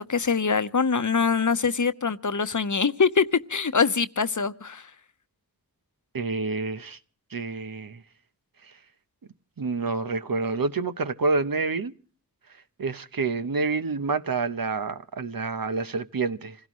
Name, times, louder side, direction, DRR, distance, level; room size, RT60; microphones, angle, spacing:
voice 1, 0.0-4.9, left 5 dB, 60° left, 0.9 m, -24 dB
voice 2, 6.1-7.0 7.3-8.0 9.6-11.9 12.8-16.5, right 4 dB, 75° right, 1.0 m, -28 dB
27.0 x 16.5 x 3.1 m
wide cardioid pair, 50°, 35 cm